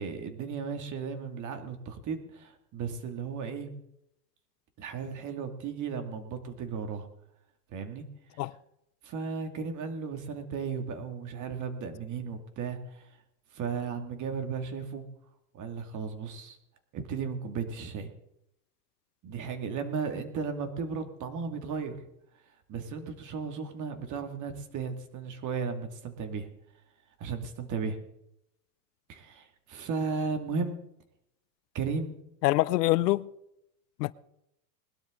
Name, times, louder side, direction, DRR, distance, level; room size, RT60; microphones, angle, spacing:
voice 1, 0.0-3.7 4.8-7.1 7.7-8.0 9.0-13.1 13.5-15.0 15.5-16.6 16.9-18.1 19.2-22.0 22.7-26.5 27.2-28.0 29.1-30.8 31.7-32.2, right 5 dB, 40° right, 2.5 m, -35 dB
voice 2, 32.4-33.3 34.0-34.1, left 18 dB, 85° left, 0.7 m, -25 dB
20.5 x 12.0 x 3.9 m
supercardioid pair, 120°, 47 cm